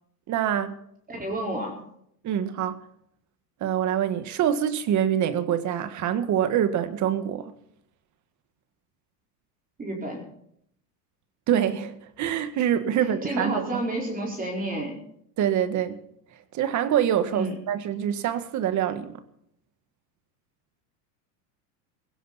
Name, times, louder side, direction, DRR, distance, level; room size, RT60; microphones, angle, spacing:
voice 1, 0.3-0.7 2.2-2.7 3.6-7.5 11.5-13.8 15.4-16.0 16.5-19.2, right 10 dB, 35° right, 1.7 m, -25 dB
voice 2, 1.1-1.8 9.8-10.2 13.0-15.0 17.3-17.5, right 1 dB, 15° right, 4.6 m, -30 dB
16.5 x 16.0 x 4.2 m
supercardioid pair, 135°, 48 cm